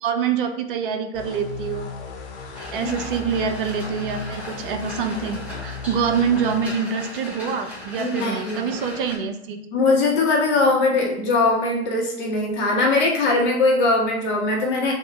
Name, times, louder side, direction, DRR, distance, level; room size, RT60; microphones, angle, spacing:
voice 1, 0.0-1.9 2.7-9.6, right 6 dB, 50° right, 7 dB, 0.6 m, -25 dB
sound 1, 1.1-6.7, left 5 dB, 70° left, 0.8 m, -36 dB
sound 2, 2.5-9.2, left 1 dB, 5° right, 0.9 m, -37 dB
voice 2, 8.0-8.6 9.7-14.9, left 3 dB, 30° left, -2 dB, 1.0 m, -20 dB
3.5 x 2.3 x 4.2 m, 0.75 s
figure-of-eight pair, 100°, 34 cm